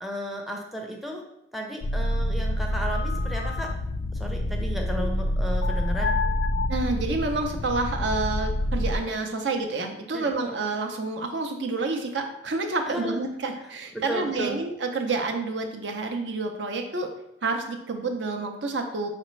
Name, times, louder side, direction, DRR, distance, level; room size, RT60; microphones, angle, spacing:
voice 1, 0.0-1.2 1.5-3.7 4.2-6.2 10.1-10.6 12.9-13.2 13.9-14.6, equal, ahead, 1 dB, 0.5 m, -34 dB
sound 1, 1.8-9.0, left 1 dB, 65° left, 0.4 m, -27 dB
voice 2, 6.7-17.1 17.4-19.1, right 3 dB, 75° right, 4 dB, 0.6 m, -29 dB
5.0 x 3.3 x 3.1 m, 0.81 s
head